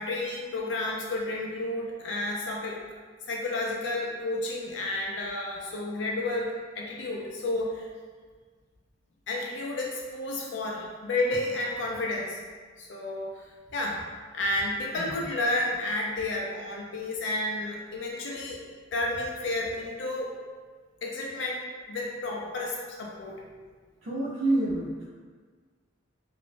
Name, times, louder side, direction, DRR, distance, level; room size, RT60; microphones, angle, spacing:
voice 1, 0.0-2.8 3.3-7.9 9.3-12.4 12.8-13.4 13.7-14.0 14.3-18.6 18.9-20.3 21.0-23.4, left 2 dB, 65° left, -2 dB, 0.4 m, -31 dB
voice 2, 24.0-25.1, right 2 dB, 90° right, -8 dB, 0.6 m, -28 dB
3.2 x 2.0 x 2.5 m, 1.5 s
head